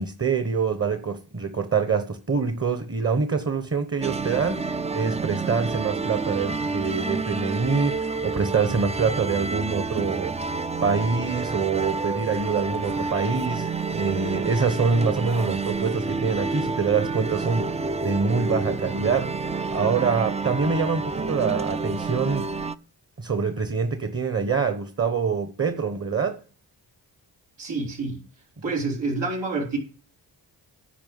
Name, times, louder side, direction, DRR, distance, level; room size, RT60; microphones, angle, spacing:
voice 1, 0.0-4.6 4.9-10.4 10.8-19.3 19.7-22.5 23.2-26.4, right 5 dB, 30° right, 1.1 m, -25 dB
sound 1, 4.0-22.7, right 4 dB, 15° right, 0.4 m, -29 dB
voice 2, 27.6-28.2 28.6-29.8, right 3 dB, 90° right, 3.4 m, -27 dB
10.5 x 4.7 x 7.7 m
cardioid pair, 60°, 44 cm